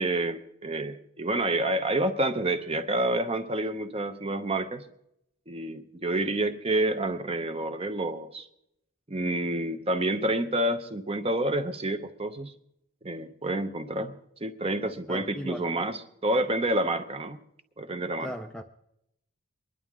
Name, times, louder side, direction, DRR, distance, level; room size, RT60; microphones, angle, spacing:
voice 1, 0.0-4.8 5.5-8.5 9.1-12.5 13.0-14.1 14.4-17.4 17.8-18.3, right 1 dB, 25° right, 0.8 m, -28 dB
voice 2, 15.1-15.7 18.2-18.6, equal, 5° left, 0.4 m, -37 dB
23.5 x 11.0 x 3.7 m
head